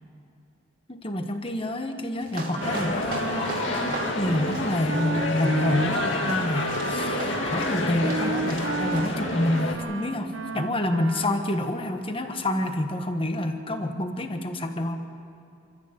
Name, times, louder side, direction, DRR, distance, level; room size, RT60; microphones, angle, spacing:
voice 1, 0.9-3.7 4.1-15.0, left 1 dB, 25° left, 6 dB, 1.3 m, -28 dB
sound 1, 2.2-9.1, right 2 dB, 45° right, 2.7 m, -39 dB
Wind instrument woodwind instrument, 2.5-11.5, right 3 dB, 70° right, 0.9 m, -34 dB
sound 2, 2.6-9.7, left 2 dB, 65° left, 2.1 m, -29 dB
26.0 x 14.5 x 8.0 m, 2.6 s
head